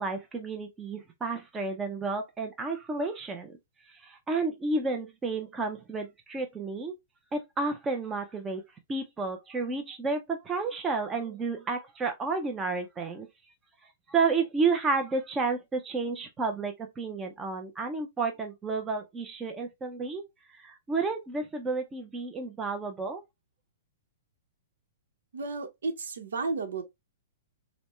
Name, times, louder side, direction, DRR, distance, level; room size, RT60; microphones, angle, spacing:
voice 1, 0.0-3.6 3.9-6.9 7.3-8.6 8.9-13.3 13.8-20.2 20.5-23.2, right 4 dB, 15° right, 0.6 m, -31 dB
voice 2, 25.3-26.8, right 3 dB, 85° right, 0.9 m, -33 dB
5.0 x 2.1 x 3.1 m
hypercardioid pair, 150°, 0 cm